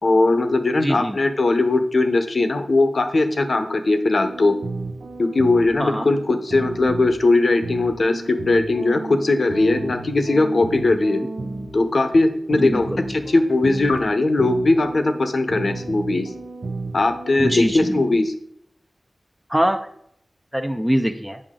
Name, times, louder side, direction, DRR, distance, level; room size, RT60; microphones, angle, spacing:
voice 1, 0.0-4.5 5.2-11.2 11.7-16.3 16.9-18.3, left 2 dB, 70° left, 7 dB, 0.9 m, -19 dB
voice 2, 0.8-1.2 5.8-6.1 12.6-13.0 17.4-18.0 19.5-19.8 20.5-21.4, equal, 5° right, 5 dB, 0.5 m, -23 dB
sound 1, 4.2-18.1, right 3 dB, 85° right, 0.8 m, -33 dB
8.6 x 5.8 x 3.7 m, 0.70 s
wide cardioid pair, 75°, 0 cm